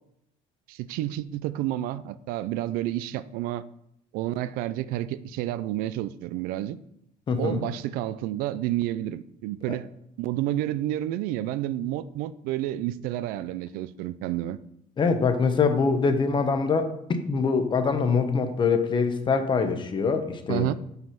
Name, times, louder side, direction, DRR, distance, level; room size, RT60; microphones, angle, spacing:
voice 1, 0.7-3.6 4.1-6.8 7.4-9.9 10.2-14.6 20.5-20.7, right 14 dB, 90° right, 16 dB, 0.4 m, -30 dB
voice 2, 7.3-7.7 9.7-9.8 15.0-20.7, left 5 dB, 35° left, 9 dB, 0.9 m, -24 dB
5.7 x 5.4 x 5.8 m, 0.77 s
cardioid pair, 120°, 14 cm